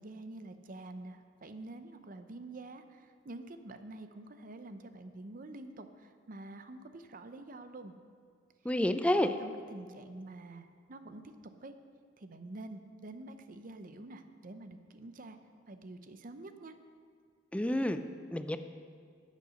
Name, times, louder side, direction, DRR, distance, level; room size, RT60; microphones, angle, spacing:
voice 1, 0.0-7.9 9.2-11.2 11.6-11.7 12.2-15.4 15.7-16.7, right 2 dB, 50° right, 9 dB, 0.7 m, -47 dB
voice 2, 8.6-9.3 17.5-18.0 18.3-18.6, left 1 dB, 5° left, 9 dB, 0.4 m, -29 dB
10.5 x 8.5 x 6.4 m, 2.1 s
head